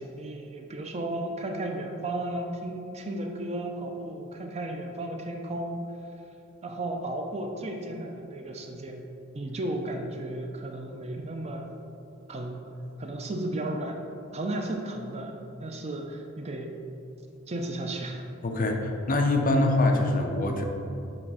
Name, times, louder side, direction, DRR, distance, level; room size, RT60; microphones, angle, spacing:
voice 1, 0.0-5.8 6.6-9.1 9.3-11.7 12.3-12.6 13.0-14.0 14.3-16.7 17.5-18.2, right 1 dB, 30° right, 3 dB, 0.5 m, -34 dB
voice 2, 18.4-20.6, left 2 dB, 40° left, 3 dB, 0.6 m, -24 dB
7.4 x 3.2 x 4.7 m, 2.7 s
head